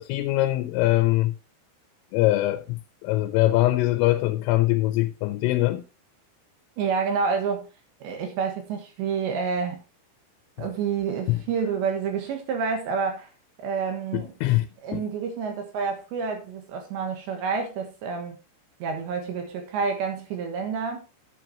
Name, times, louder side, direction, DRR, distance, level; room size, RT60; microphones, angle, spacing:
voice 1, 0.0-1.3 2.1-5.8 10.6-10.7 11.3-11.4 14.1-14.7 14.9-15.0, left 17 dB, 85° left, 3.3 m, -23 dB
voice 2, 6.8-7.7 8.0-9.8 10.6-13.3 13.6-14.3 14.8-18.4 18.8-21.0, right 5 dB, 70° right, 3.3 m, -28 dB
10.5 x 7.9 x 2.9 m
omnidirectional pair, 5.9 m